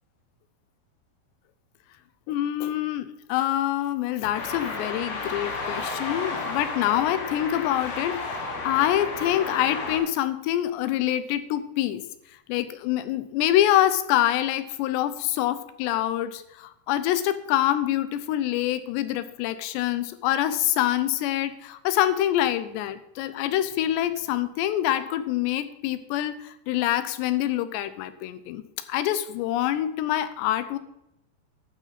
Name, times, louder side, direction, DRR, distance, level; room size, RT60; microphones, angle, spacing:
voice 1, 2.3-12.0 12.5-28.6 28.9-30.8, left 12 dB, 90° left, 13 dB, 3.0 m, -25 dB
sound 1, 4.3-10.0, left 3 dB, 65° left, 3.7 m, -32 dB
12.0 x 9.2 x 4.1 m, 0.80 s
omnidirectional pair, 4.9 m